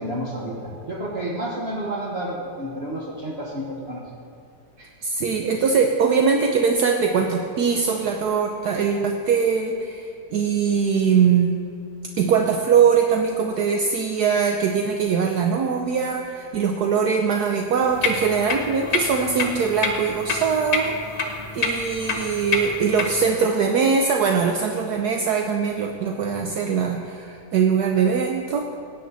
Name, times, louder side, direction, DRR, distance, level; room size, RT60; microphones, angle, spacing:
voice 1, 0.0-4.0, right 1 dB, 40° right, -5 dB, 1.4 m, -30 dB
voice 2, 4.8-11.6 12.2-28.7, right 6 dB, 70° right, 3 dB, 1.2 m, -22 dB
sound 1, 17.8-23.2, left 4 dB, 45° left, 1.6 m, -27 dB
17.0 x 9.3 x 4.0 m, 2.5 s
omnidirectional pair, 1.9 m